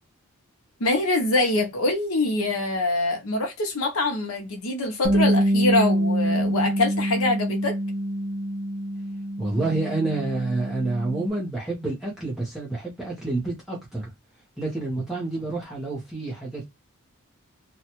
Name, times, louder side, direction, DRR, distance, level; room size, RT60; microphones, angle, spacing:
voice 1, 0.8-7.8, left 2 dB, 80° left, 0.8 m, -24 dB
Bass guitar, 5.0-11.3, equal, 80° right, 0.9 m, -25 dB
voice 2, 9.4-14.1 14.6-16.7, right 2 dB, ahead, 0.9 m, -28 dB
2.8 x 2.4 x 2.8 m
head